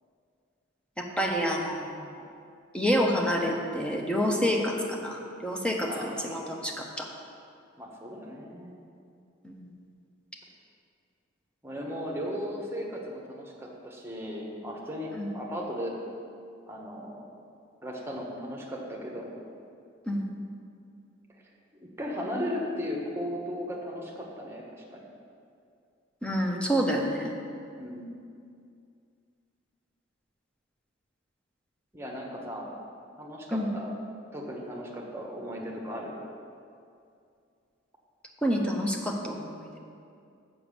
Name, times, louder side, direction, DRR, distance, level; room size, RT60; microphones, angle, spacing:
voice 1, 1.0-2.0 2.7-7.1 9.4-9.6 15.1-15.3 20.1-20.3 26.2-27.3 33.5-33.7 38.4-39.8, equal, 5° left, 0 dB, 0.8 m, -28 dB
voice 2, 5.9-6.4 7.8-8.7 11.6-15.9 16.7-17.3 17.8-19.4 22.0-24.6 24.9-25.0 27.8-28.1 31.9-32.7 33.2-33.9 34.3-36.1, equal, 10° right, -2 dB, 1.2 m, -36 dB
7.0 x 6.0 x 6.9 m, 2.4 s
head